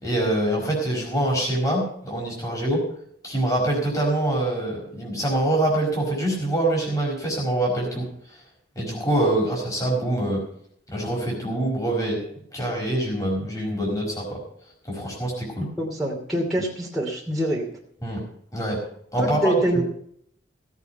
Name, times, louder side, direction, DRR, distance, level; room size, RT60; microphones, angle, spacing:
voice 1, 0.0-2.8 3.2-8.1 8.7-10.4 10.9-12.2 12.5-14.4 14.9-15.7 18.0-18.2 18.5-18.8 19.1-19.8, right 1 dB, 20° left, -2 dB, 4.9 m, -25 dB
voice 2, 15.8-17.6 19.2-19.8, right 1 dB, ahead, -6 dB, 2.8 m, -25 dB
17.0 x 8.4 x 5.5 m, 0.67 s
head